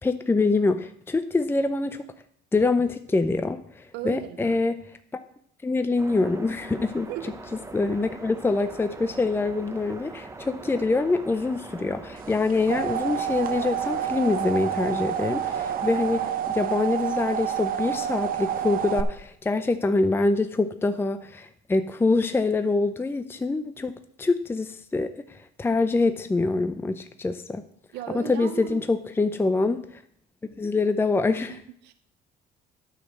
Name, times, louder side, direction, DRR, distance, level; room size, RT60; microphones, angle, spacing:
voice 1, 0.0-2.0 2.5-4.8 5.6-7.1 7.7-27.7 28.1-30.0 30.6-31.6, left 3 dB, 15° left, 0.6 m, -25 dB
voice 2, 3.9-4.6 7.1-7.4 27.9-28.8 31.5-31.9, right 12 dB, 85° right, 0.6 m, -36 dB
sound 1, 6.0-16.3, right 3 dB, 15° right, 0.9 m, -42 dB
sound 2, 12.3-19.0, right 9 dB, 60° right, 0.8 m, -28 dB
9.2 x 6.3 x 7.3 m
cardioid pair, 110°, 17 cm